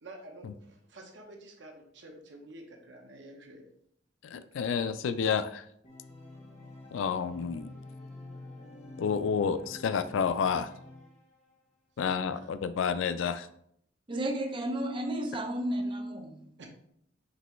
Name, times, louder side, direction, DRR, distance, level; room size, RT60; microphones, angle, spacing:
voice 1, 0.0-3.7 12.1-12.4 16.6-16.7, right 1 dB, 65° right, 2 dB, 0.9 m, -49 dB
voice 2, 4.2-5.6 6.9-7.7 9.0-10.7 12.0-13.5, left 6 dB, 85° left, 12 dB, 0.3 m, -30 dB
Organ, 5.8-11.6, left 2 dB, 35° left, 0.9 m, -48 dB
voice 3, 14.1-16.5, right 1 dB, 25° right, 4 dB, 0.5 m, -32 dB
5.3 x 3.0 x 3.1 m, 0.69 s
head